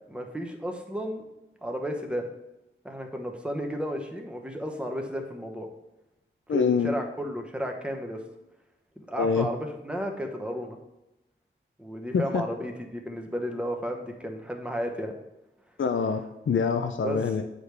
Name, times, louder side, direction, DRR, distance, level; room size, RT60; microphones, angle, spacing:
voice 1, 0.1-1.2 1.6-2.3 2.8-5.7 6.5-8.2 9.0-10.8 11.8-15.1 17.0-17.2, equal, 5° right, 2 dB, 1.0 m, -33 dB
voice 2, 6.5-6.9 9.2-9.5 12.1-12.4 15.8-17.4, left 5 dB, 70° left, 6 dB, 0.5 m, -25 dB
7.8 x 5.1 x 3.3 m, 0.95 s
wide cardioid pair, 50°, 21 cm